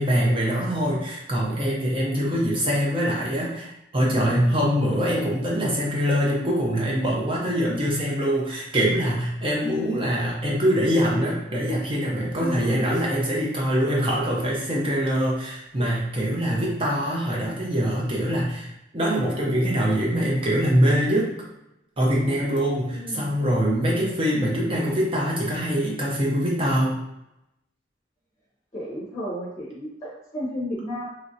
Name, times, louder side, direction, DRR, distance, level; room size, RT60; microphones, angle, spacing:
voice 1, 0.0-21.3 22.0-27.0, equal, 30° right, -4 dB, 0.6 m, -23 dB
voice 2, 4.2-4.6 12.4-12.8 16.4-16.7 22.9-23.4 23.8-24.1 28.7-31.1, equal, 20° left, -6 dB, 0.7 m, -33 dB
3.0 x 2.5 x 2.6 m, 0.86 s
head